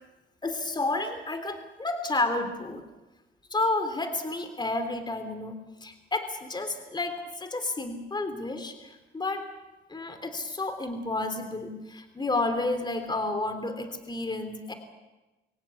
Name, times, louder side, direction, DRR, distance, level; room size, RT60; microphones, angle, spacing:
voice 1, 0.4-2.8 3.5-9.4 9.9-14.7, left 2 dB, 20° left, 8 dB, 3.2 m, -31 dB
24.0 x 17.0 x 8.4 m, 1.1 s
cardioid pair, 90°, 20 cm